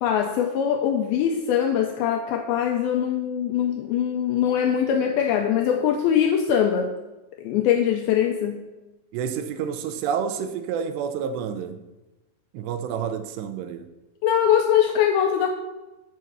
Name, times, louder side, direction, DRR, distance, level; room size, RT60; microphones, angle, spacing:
voice 1, 0.0-6.9 7.4-8.6 14.2-15.5, left 9 dB, 85° left, 4 dB, 2.1 m, -22 dB
voice 2, 9.1-11.8 12.5-13.9, right 7 dB, 85° right, 9 dB, 2.8 m, -29 dB
7.4 x 4.6 x 6.6 m, 1.1 s
omnidirectional pair, 4.8 m